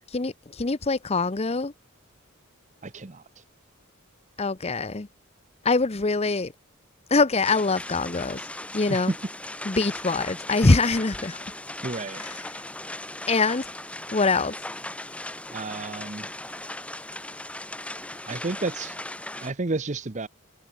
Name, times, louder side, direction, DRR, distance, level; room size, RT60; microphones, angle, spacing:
voice 1, 0.1-1.7 4.4-5.1 5.6-6.5 7.1-8.4 8.7-9.1 9.6-11.4 12.2-12.3 13.3-13.7 14.1-14.5, left 3 dB, 30° left, 0.7 m, -23 dB
voice 2, 2.8-3.4 8.9-9.2 11.8-12.2 15.5-16.3 18.3-19.0 19.4-20.3, right 3 dB, 35° right, 0.8 m, -31 dB
sound 1, 7.4-19.5, left 1 dB, 5° left, 1.6 m, -38 dB
head